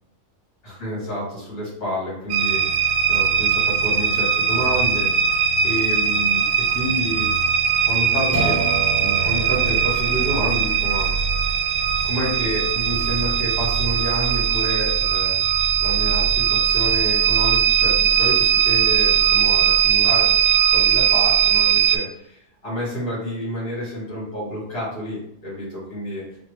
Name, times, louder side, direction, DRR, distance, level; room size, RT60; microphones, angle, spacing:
voice 1, 0.6-7.3 7.9-8.6 9.0-11.3 12.0-15.4 15.8-20.3 20.6-26.2, equal, 50° left, -7 dB, 1.8 m, -29 dB
sound 1, 2.3-22.0, right 8 dB, 90° right, 1.0 m, -20 dB
sound 2, 8.3-15.3, right 1 dB, 15° right, 0.6 m, -33 dB
3.5 x 2.1 x 3.1 m, 0.75 s
omnidirectional pair, 1.3 m